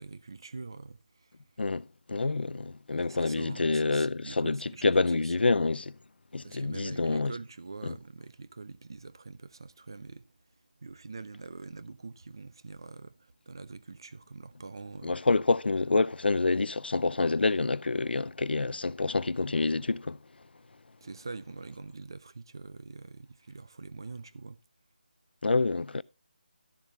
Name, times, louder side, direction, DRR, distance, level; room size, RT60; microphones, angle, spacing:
voice 1, 0.0-1.4 3.1-4.9 5.2-5.3 6.4-10.3 10.8-15.2 21.0-24.6, right 3 dB, 25° right, 0.4 m, -44 dB
voice 2, 1.6-5.9 6.3-7.3 7.8-7.9 15.0-20.2 25.4-26.0, left 3 dB, 80° left, 0.5 m, -27 dB
12.0 x 7.2 x 3.5 m
figure-of-eight pair, 180°, 5 cm